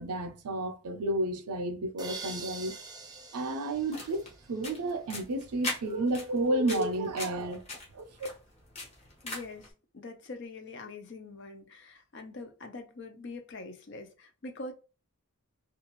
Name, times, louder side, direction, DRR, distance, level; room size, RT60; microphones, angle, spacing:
voice 1, 0.0-2.8 3.3-7.6 7.9-8.0, right 1 dB, 85° right, 0.5 m, -31 dB
sound 1, 2.0-4.8, right 4 dB, 15° right, 0.3 m, -44 dB
sound 2, 3.7-9.7, left 2 dB, 30° left, 0.8 m, -41 dB
voice 2, 9.2-14.7, left 3 dB, 50° left, 0.5 m, -44 dB
2.4 x 2.3 x 3.0 m
head